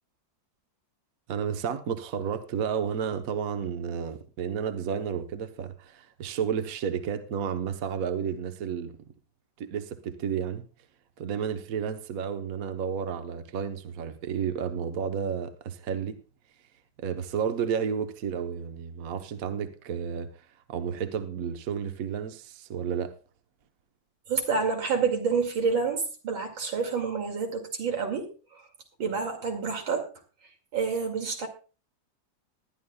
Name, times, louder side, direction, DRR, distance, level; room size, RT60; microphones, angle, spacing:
voice 1, 1.3-8.9 9.6-10.7 11.2-16.2 17.0-20.3 20.7-23.1, right 7 dB, 50° right, 1.4 m, -31 dB
voice 2, 24.3-28.3 29.0-30.1 30.7-31.5, right 5 dB, 90° right, 3.1 m, -28 dB
20.5 x 11.0 x 2.3 m
omnidirectional pair, 2.1 m